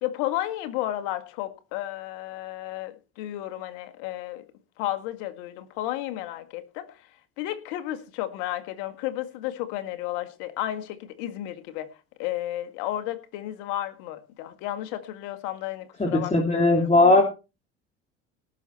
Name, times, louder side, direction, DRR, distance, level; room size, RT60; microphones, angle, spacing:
voice 1, 0.0-4.4 4.8-7.0 7.4-11.9 12.2-17.2, left 14 dB, 70° left, 1.9 m, -33 dB
voice 2, 16.0-17.2, left 2 dB, 20° left, 3.0 m, -19 dB
18.5 x 6.7 x 4.3 m
hypercardioid pair, 70°, 32 cm